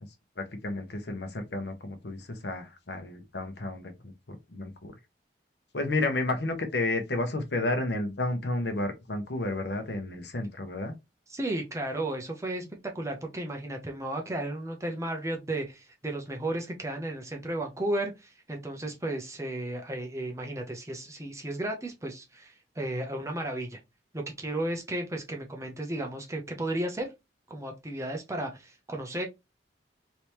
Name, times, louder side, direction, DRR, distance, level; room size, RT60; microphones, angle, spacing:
voice 1, 0.4-4.1 4.5-4.9 5.7-10.9, left 2 dB, 65° left, 0.9 m, -31 dB
voice 2, 11.3-23.8 24.1-27.1 27.5-29.3, right 1 dB, 15° right, 0.6 m, -34 dB
3.3 x 3.0 x 2.9 m
head